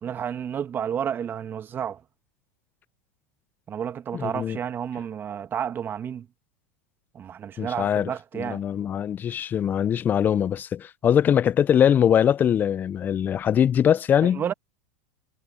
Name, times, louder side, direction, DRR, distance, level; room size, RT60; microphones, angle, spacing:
voice 1, 0.0-2.0 3.7-6.3 7.1-8.6 14.2-14.5, right 8 dB, 30° right, 1.5 m, -31 dB
voice 2, 4.1-4.6 7.6-8.1 8.4-14.4, left 9 dB, 30° left, 0.4 m, -22 dB
hypercardioid pair, 105°, 7 cm